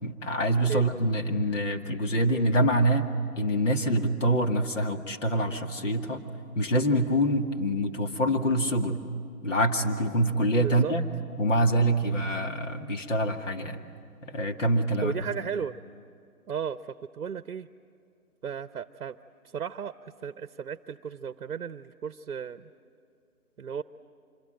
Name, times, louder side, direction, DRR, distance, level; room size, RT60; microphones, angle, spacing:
voice 1, 0.0-3.1 3.4-6.3 6.6-9.0 9.4-11.1 11.4-13.8 14.2-15.1, right 1 dB, 55° left, 4 dB, 2.2 m, -25 dB
voice 2, 10.6-10.9 15.0-15.7 16.5-17.7 18.4-19.2 19.5-22.7 23.6-23.8, right 7 dB, 65° right, 13 dB, 0.8 m, -34 dB
26.0 x 23.5 x 9.0 m, 2.4 s
hypercardioid pair, 160°, 45 cm